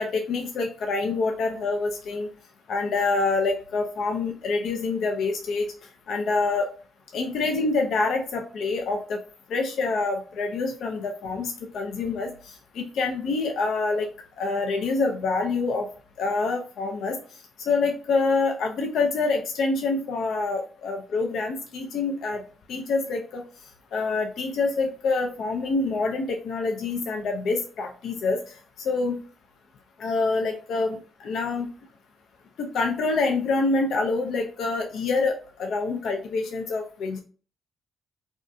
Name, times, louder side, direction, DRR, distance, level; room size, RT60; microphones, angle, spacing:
voice 1, 0.0-2.3 2.7-5.7 6.1-6.7 7.1-9.2 9.5-12.3 12.7-14.1 14.4-15.9 16.2-17.2 17.6-22.4 22.7-23.4 23.9-28.4 28.8-29.2 30.0-31.7 32.6-37.2, left 3 dB, 70° left, 3 dB, 0.4 m, -26 dB
2.6 x 2.2 x 2.4 m, 0.40 s
hypercardioid pair, 50°, 0 cm